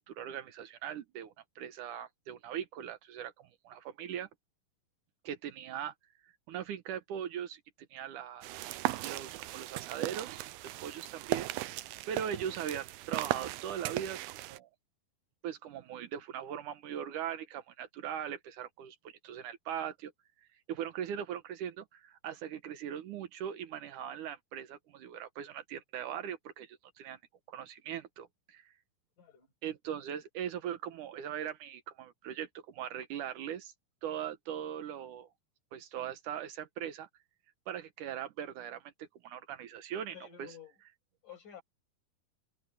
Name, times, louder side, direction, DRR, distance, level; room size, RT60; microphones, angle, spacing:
voice 1, 0.0-4.3 5.2-5.9 6.5-7.6 7.9-8.5 9.0-10.5 10.8-11.5 12.1-14.7 15.4-20.1 20.7-27.2 27.5-28.7 29.6-33.7 34.0-35.3 35.7-37.1 37.7-38.9 39.2-40.5, right 9 dB, 65° right, 2.3 m, -40 dB
sound 1, 8.4-14.6, right 17 dB, 90° right, 2.7 m, -37 dB
voice 2, 12.1-12.5 29.2-29.5 40.1-40.7 41.2-41.6, left 8 dB, 55° left, 7.9 m, -51 dB
omnidirectional pair, 4.3 m